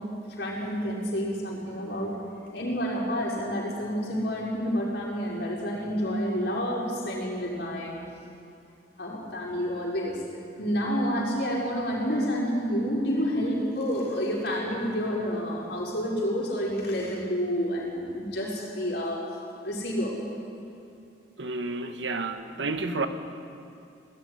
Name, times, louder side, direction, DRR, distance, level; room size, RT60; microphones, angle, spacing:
voice 1, 0.4-2.2 2.5-7.9 9.0-10.2 10.6-19.2 19.6-20.1, equal, 65° left, 5.6 m, -29 dB
voice 2, 21.4-23.1, right 3 dB, 80° right, 1.4 m, -30 dB
19.0 x 16.5 x 9.9 m
head